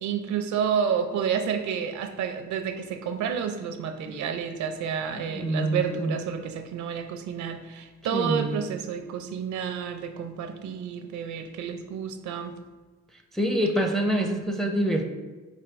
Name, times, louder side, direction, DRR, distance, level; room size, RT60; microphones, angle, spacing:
voice 1, 0.0-12.5, right 7 dB, 70° right, 7 dB, 0.5 m, -30 dB
voice 2, 5.1-6.2 8.1-8.6 13.3-15.0, right 1 dB, ahead, 3 dB, 0.5 m, -26 dB
5.0 x 2.7 x 3.5 m, 1.3 s
cardioid pair, 90°, 30 cm